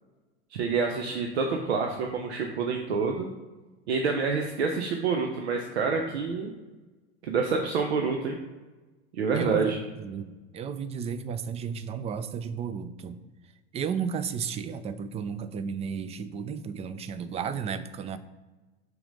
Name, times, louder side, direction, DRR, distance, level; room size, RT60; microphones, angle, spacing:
voice 1, 0.5-3.3 3.9-6.6 7.2-8.4 9.1-9.8, right 4 dB, 75° right, 3 dB, 0.8 m, -27 dB
voice 2, 9.3-13.2 13.7-18.2, right 6 dB, 20° right, 12 dB, 0.4 m, -33 dB
5.7 x 3.9 x 5.3 m, 1.2 s
hypercardioid pair, 90°, 33 cm